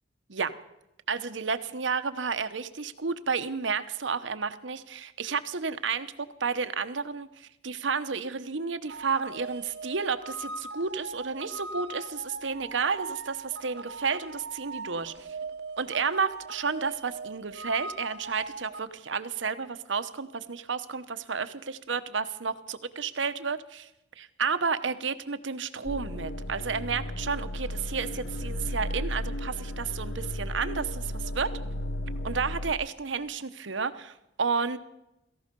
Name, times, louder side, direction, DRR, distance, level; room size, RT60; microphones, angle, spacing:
voice 1, 1.1-6.1 6.4-15.3 15.8-23.9 24.2-31.5 32.2-34.8, right 5 dB, 90° right, 11 dB, 1.0 m, -31 dB
sound 1, 8.9-18.8, right 3 dB, 60° right, 0.9 m, -40 dB
sound 2, 25.8-32.7, left 1 dB, 80° left, 1.0 m, -34 dB
17.0 x 15.0 x 5.3 m, 0.90 s
head